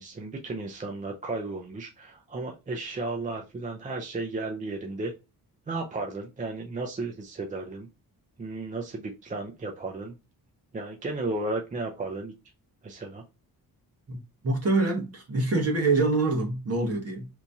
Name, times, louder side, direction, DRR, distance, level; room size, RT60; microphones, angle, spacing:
voice 1, 0.0-5.1 5.7-7.9 8.4-10.2 10.7-12.3 12.8-13.2, right 2 dB, 25° right, 0.3 m, -34 dB
voice 2, 14.4-17.3, right 3 dB, 40° right, 1.0 m, -25 dB
2.9 x 2.7 x 3.4 m
wide cardioid pair, 170°, 38 cm